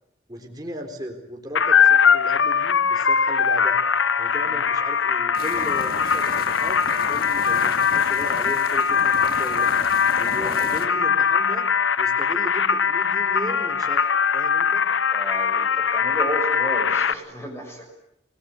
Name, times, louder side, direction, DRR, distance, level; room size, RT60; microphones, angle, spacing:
voice 1, 0.3-3.8 4.2-9.7 10.2-11.6 12.0-14.8, equal, 20° right, 2 dB, 4.0 m, -36 dB
sound 1, 1.6-17.1, left 6 dB, 85° left, 1.0 m, -21 dB
sound 2, 5.3-10.9, left 3 dB, 50° left, 2.6 m, -35 dB
voice 2, 10.2-10.6 14.9-17.9, right 1 dB, 15° left, 1 dB, 6.4 m, -33 dB
28.5 x 20.5 x 9.6 m, 0.81 s
head